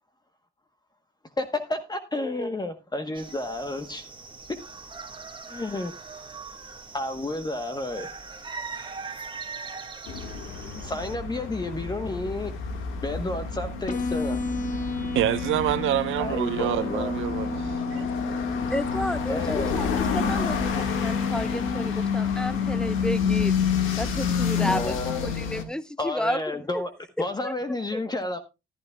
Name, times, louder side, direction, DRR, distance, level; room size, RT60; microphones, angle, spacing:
voice 1, 1.4-4.1 5.5-5.9 6.9-8.1 10.8-12.5 13.0-14.4 16.2-17.1 19.3-19.7 24.6-25.3 26.0-26.9 27.2-28.4, left 2 dB, 20° left, 1.1 m, -31 dB
sound 1, 3.1-11.2, right 4 dB, 25° right, 1.7 m, -41 dB
sound 2, 10.1-25.6, left 6 dB, 90° left, 1.8 m, -29 dB
sound 3, 13.9-21.9, left 3 dB, 40° left, 1.7 m, -32 dB
voice 2, 14.8-18.1, right 13 dB, 85° right, 0.9 m, -27 dB
voice 3, 18.7-23.5 24.0-26.8 27.4-27.5 27.9-28.0, equal, 5° left, 0.7 m, -32 dB
14.0 x 12.0 x 2.3 m
cardioid pair, 90°, 20 cm